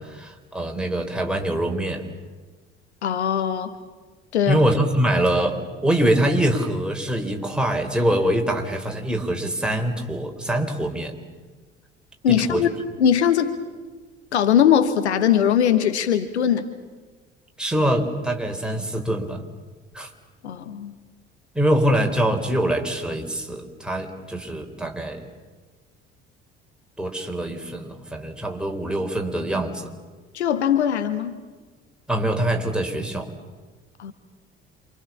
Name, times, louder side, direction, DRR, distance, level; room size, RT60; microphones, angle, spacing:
voice 1, 0.0-2.0 4.5-11.1 12.3-12.7 17.6-19.4 19.9-20.1 21.5-25.2 27.0-29.9 32.1-33.3, right 1 dB, 5° right, 2 dB, 3.9 m, -24 dB
voice 2, 3.0-3.7 4.3-4.6 12.2-12.7 13.0-13.6 14.3-16.7 20.4-20.9 30.3-31.4 34.0-34.1, left 9 dB, 75° left, 10 dB, 1.2 m, -20 dB
27.5 x 26.0 x 7.2 m, 1.3 s
figure-of-eight pair, 55°, 33 cm